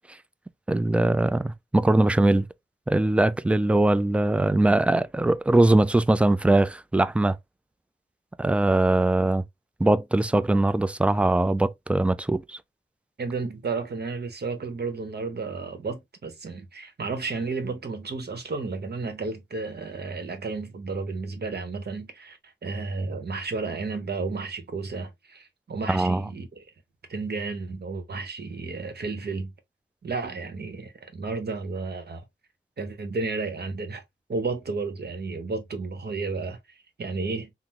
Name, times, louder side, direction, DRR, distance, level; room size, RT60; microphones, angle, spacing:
voice 1, 0.7-2.5 2.9-7.4 8.4-9.4 9.8-12.6 25.9-26.2, right 2 dB, 5° right, 0.3 m, -21 dB
voice 2, 13.2-26.6 27.1-29.5 30.0-32.2 32.8-34.0 34.3-36.6 37.0-37.5, right 4 dB, 55° right, 0.9 m, -32 dB
3.6 x 2.0 x 2.9 m
cardioid pair, 60°, 20 cm